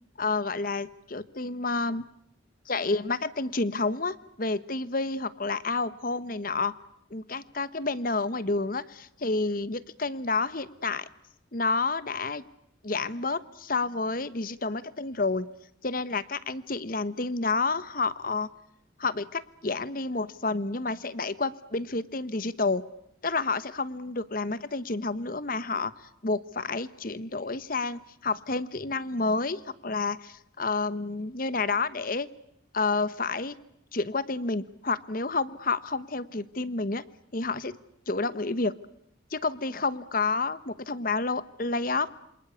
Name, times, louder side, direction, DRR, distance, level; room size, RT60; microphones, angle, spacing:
voice 1, 0.2-2.0 2.7-6.7 7.1-11.1 11.5-12.4 12.8-15.5 15.8-18.5 19.0-22.8 23.2-25.9 26.2-32.3 32.7-33.6 33.9-37.0 37.3-37.8 38.1-38.8 39.3-42.1, left 3 dB, 45° left, 15 dB, 1.1 m, -29 dB
27.5 x 26.0 x 8.2 m, 0.76 s
head